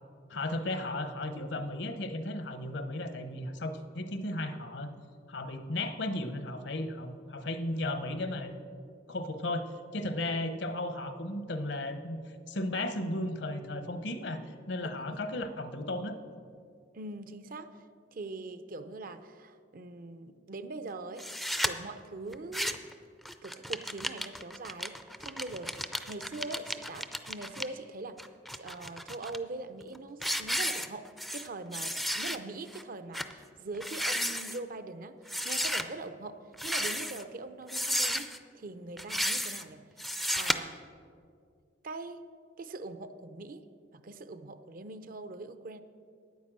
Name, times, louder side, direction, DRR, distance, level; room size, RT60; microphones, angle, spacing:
voice 1, 0.3-4.9 5.3-8.6 9.1-12.2 12.5-16.2, left 1 dB, 65° left, 9 dB, 0.9 m, -35 dB
voice 2, 14.8-15.2 16.9-17.7 18.1-21.3 21.6-22.8 23.4-28.2 28.6-35.2 35.4-39.8 40.3-40.8 41.8-42.2 42.6-43.6 43.9-45.8, right 2 dB, 50° right, 11 dB, 0.6 m, -42 dB
sound 1, 21.2-21.7 22.3-22.9 23.2-27.6 28.2-29.4 29.8-30.0 30.2-31.5 31.7-32.4 32.7-32.8 33.1-33.3 33.7-34.6 35.3-35.8 36.5-37.2 37.7-38.4 39.0-39.6 40.0-40.6, equal, ahead, 0.4 m, -33 dB
9.5 x 9.3 x 7.5 m, 2.2 s
head